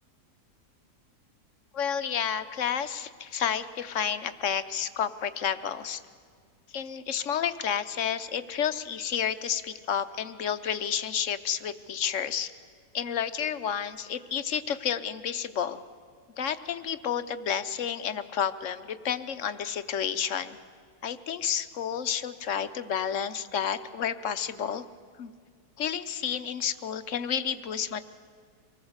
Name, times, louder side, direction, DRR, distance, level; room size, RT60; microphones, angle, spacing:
voice 1, 1.7-6.0 6.7-12.5 12.9-15.8 16.4-20.6 21.0-24.8 25.2-25.3 25.8-28.0, left 8 dB, 55° left, 11 dB, 1.1 m, -30 dB
25.0 x 19.0 x 8.0 m, 2.1 s
omnidirectional pair, 1.7 m